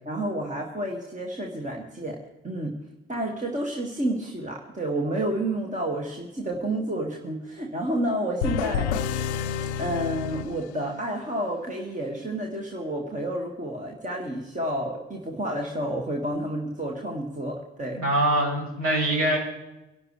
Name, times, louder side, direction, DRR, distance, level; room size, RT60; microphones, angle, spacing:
voice 1, 0.1-2.2 2.4-2.8 3.1-8.9 9.8-18.0, right 1 dB, 20° right, 0 dB, 2.1 m, -30 dB
sound 1, 8.4-11.2, left 7 dB, 75° left, 0.7 m, -29 dB
voice 2, 17.9-19.4, right 1 dB, 55° right, -5 dB, 6.5 m, -23 dB
24.5 x 12.0 x 3.4 m, 0.98 s
figure-of-eight pair, 45°, 34 cm